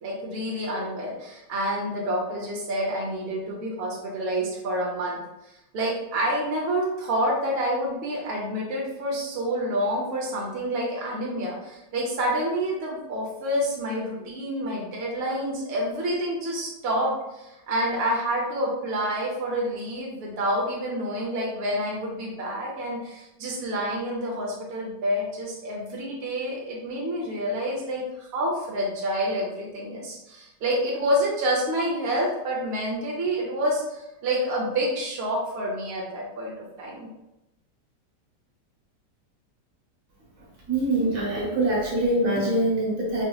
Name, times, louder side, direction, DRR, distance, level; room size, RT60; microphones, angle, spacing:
voice 1, 0.0-5.2 5.7-37.1, equal, 65° right, -3 dB, 0.6 m, -28 dB
voice 2, 40.7-43.2, right 1 dB, 50° right, -5 dB, 1.4 m, -24 dB
3.8 x 2.8 x 2.3 m, 0.93 s
omnidirectional pair, 1.9 m